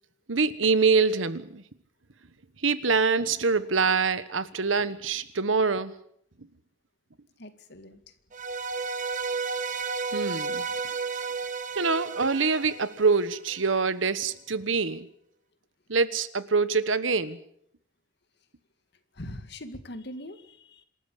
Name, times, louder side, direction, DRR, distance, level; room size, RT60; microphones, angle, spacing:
voice 1, 0.3-1.6 2.6-5.9 10.1-10.6 11.8-15.1 15.9-17.4, right 4 dB, 90° right, 14 dB, 1.3 m, -25 dB
voice 2, 7.4-8.1 19.1-20.8, left 1 dB, 60° left, 9 dB, 2.1 m, -42 dB
sound 1, 8.3-13.5, right 5 dB, 40° right, 1.5 m, -32 dB
26.5 x 13.5 x 8.5 m, 0.71 s
head